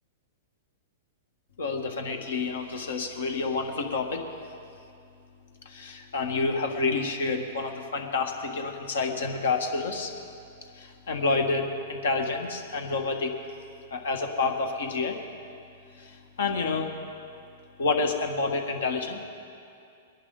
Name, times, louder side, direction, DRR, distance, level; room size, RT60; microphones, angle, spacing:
voice 1, 1.6-4.3 5.6-10.1 10.7-13.3 13.9-15.2 16.0-16.9 17.8-19.2, left 4 dB, 80° left, 3 dB, 1.6 m, -29 dB
21.5 x 11.0 x 3.9 m, 2.5 s
hypercardioid pair, 125°, 0 cm